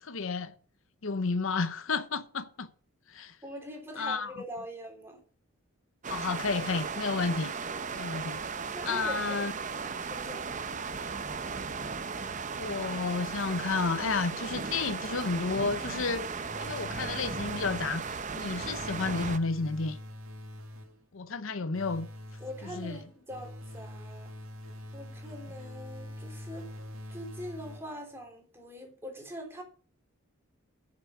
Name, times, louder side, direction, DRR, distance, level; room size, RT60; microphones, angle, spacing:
voice 1, 0.0-0.5 1.0-2.7 3.1-3.4 4.0-4.3 6.1-7.5 7.9-8.4 8.8-9.5 12.5-16.2 16.6-20.0 21.1-22.1 22.7-23.0, left 4 dB, 70° left, 0.8 m, -31 dB
voice 2, 3.4-5.2 8.7-10.8 22.4-24.3 24.9-29.6, equal, 10° right, 3.4 m, -43 dB
sound 1, 6.0-19.4, right 5 dB, 35° right, 0.7 m, -36 dB
sound 2, 16.4-18.1 18.6-21.1 21.7-28.1, left 1 dB, 70° right, 2.1 m, -44 dB
9.7 x 6.8 x 7.7 m
head